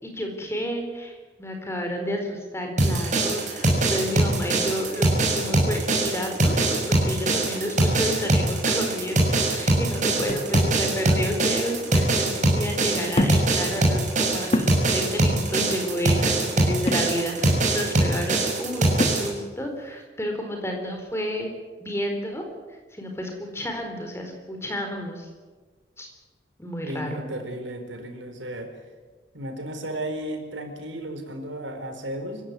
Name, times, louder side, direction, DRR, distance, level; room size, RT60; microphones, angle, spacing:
voice 1, 0.0-21.5 21.8-22.4 22.7-25.3 26.0-26.1 26.6-27.2, equal, 15° left, 3 dB, 4.3 m, -31 dB
sound 1, 2.8-19.3, right 2 dB, 40° right, 6.2 m, -22 dB
sound 2, 10.3-10.8 11.9-12.0 13.1-13.6 14.0-14.1 14.5-14.8 16.9-17.1 19.0-19.3, left 1 dB, 35° left, 1.7 m, -26 dB
voice 2, 26.8-28.7 29.3-32.4, right 1 dB, 80° right, 6 dB, 4.4 m, -34 dB
25.0 x 15.5 x 9.7 m, 1.4 s
head